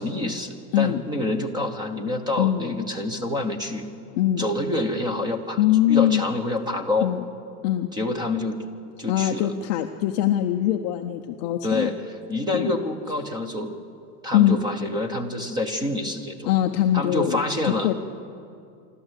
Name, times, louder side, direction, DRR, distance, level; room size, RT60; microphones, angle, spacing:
voice 1, 0.0-3.9 4.4-5.6 5.9-7.1 7.9-8.6 9.0-9.5 11.6-13.7 14.2-16.5 16.9-17.9, left 2 dB, 10° right, 7 dB, 0.9 m, -27 dB
voice 2, 2.4-2.8 4.2-4.4 5.6-6.2 7.0-7.2 7.6-7.9 9.1-11.9 12.5-12.7 14.3-14.6 16.5-17.9, left 12 dB, 30° left, 4 dB, 0.4 m, -22 dB
26.0 x 13.0 x 8.1 m, 2.4 s
supercardioid pair, 170°, 46 cm